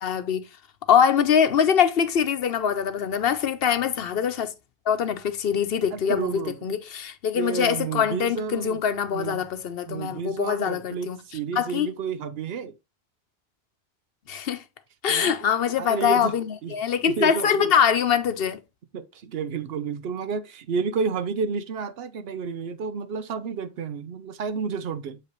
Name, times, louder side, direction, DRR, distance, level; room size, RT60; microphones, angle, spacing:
voice 1, 0.0-0.5 0.9-4.5 4.9-11.2 11.6-11.9 14.3-14.6 15.0-18.6, left 8 dB, 70° left, 0.9 m, -23 dB
voice 2, 5.9-6.7 7.3-8.8 9.1-9.4 9.9-12.7 15.1-15.5 15.8-16.3 16.6-16.7 17.1-17.7 18.9-25.2, right 5 dB, 75° right, 0.9 m, -31 dB
7.4 x 5.0 x 3.0 m
omnidirectional pair, 1.0 m